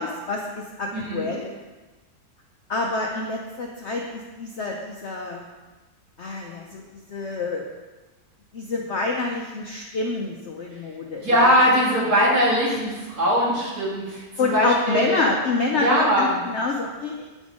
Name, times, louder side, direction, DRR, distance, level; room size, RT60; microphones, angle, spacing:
voice 1, 0.0-1.5 2.7-5.4 6.2-6.8 7.1-7.7 8.5-11.5 14.4-17.3, left 3 dB, 65° left, 0 dB, 0.7 m, -27 dB
voice 2, 0.9-1.3 11.2-15.3 15.7-16.4, equal, 60° right, -7 dB, 2.5 m, -21 dB
8.6 x 3.6 x 5.0 m, 1.2 s
omnidirectional pair, 1.8 m